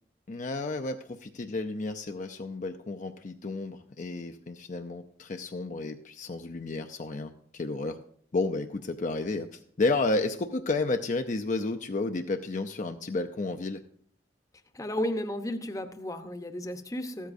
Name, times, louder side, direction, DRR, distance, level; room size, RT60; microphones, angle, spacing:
voice 1, 0.3-8.0 8.3-13.8, left 3 dB, 45° left, 6 dB, 0.5 m, -32 dB
voice 2, 14.7-17.3, left 1 dB, 20° left, 8 dB, 0.8 m, -33 dB
14.5 x 13.0 x 2.6 m, 0.63 s
head